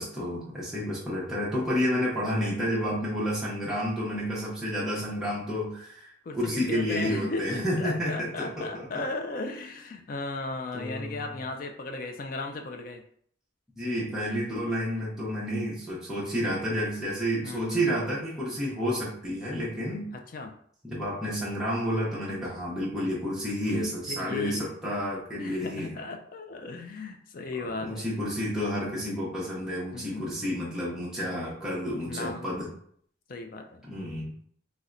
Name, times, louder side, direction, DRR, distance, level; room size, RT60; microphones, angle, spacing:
voice 1, 0.0-8.9 10.7-11.2 13.8-20.1 20.8-26.0 27.6-32.7 33.9-34.3, equal, 5° right, -8 dB, 0.7 m, -30 dB
voice 2, 6.2-13.0 17.4-17.9 20.1-20.6 23.7-24.7 25.4-28.1 29.9-30.3 32.1-32.4 33.3-33.8, left 3 dB, 45° left, 4 dB, 0.3 m, -36 dB
4.1 x 2.1 x 2.4 m, 0.63 s
head